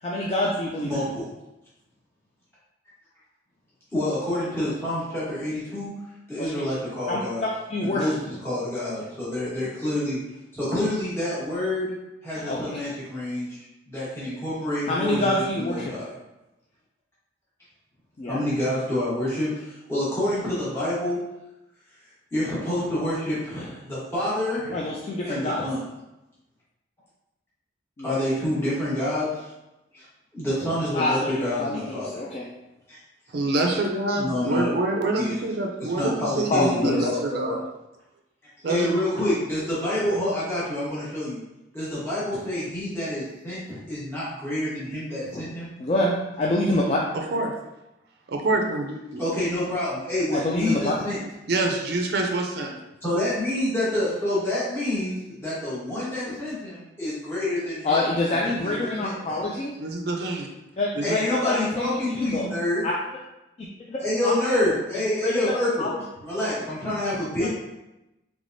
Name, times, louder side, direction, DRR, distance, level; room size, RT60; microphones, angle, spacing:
voice 1, 0.0-1.0 6.4-6.5 7.1-8.0 12.5-12.6 14.9-15.9 18.2-18.4 24.7-25.6 28.0-28.2 30.9-32.4 36.5-37.1 45.8-47.0 50.3-50.9 57.8-59.7 60.8-62.5 62.8-62.9 63.9-64.3 65.2-65.9 67.4-67.5, left 1 dB, 35° left, -4 dB, 0.3 m, -26 dB
voice 2, 0.8-1.3 3.9-5.9 6.3-7.4 7.8-10.2 10.5-12.0 12.2-16.1 18.2-21.2 22.3-24.9 25.2-25.8 28.0-29.5 29.9-30.1 30.3-32.2 32.9-33.0 34.1-34.7 35.2-35.4 35.8-37.6 38.7-41.4 41.7-45.7 49.2-51.2 53.0-58.0 58.4-59.5 61.0-62.8 64.0-65.9 66.2-67.5, left 1 dB, 15° left, -10 dB, 1.2 m, -27 dB
voice 3, 33.3-37.6 38.6-38.9 47.1-47.5 48.3-49.2 51.5-52.7 59.8-60.5 60.9-61.2, right 2 dB, 55° right, 2 dB, 0.4 m, -26 dB
3.3 x 3.2 x 2.6 m, 0.95 s
head